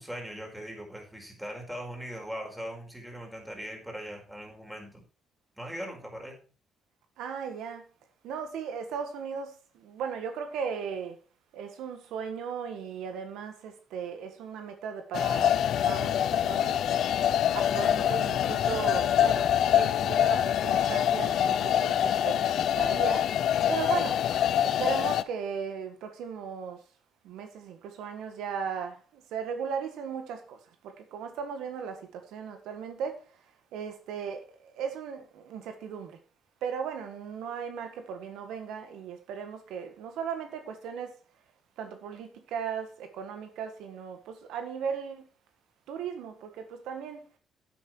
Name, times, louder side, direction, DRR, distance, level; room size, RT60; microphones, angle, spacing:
voice 1, 0.0-5.0 5.6-6.4, equal, 5° right, 4.7 m, -40 dB
voice 2, 7.2-7.8 8.2-11.2 11.5-15.6 15.8-16.8 17.5-23.3 23.7-24.2 24.6-26.8 27.2-30.6 30.8-33.2 33.7-36.2 36.6-41.2 41.8-45.3 45.9-47.2, right 6 dB, 85° right, 1.6 m, -37 dB
sound 1, 15.1-25.2, left 10 dB, 75° left, 0.6 m, -25 dB
10.0 x 8.6 x 4.6 m
cardioid pair, 90°, 0 cm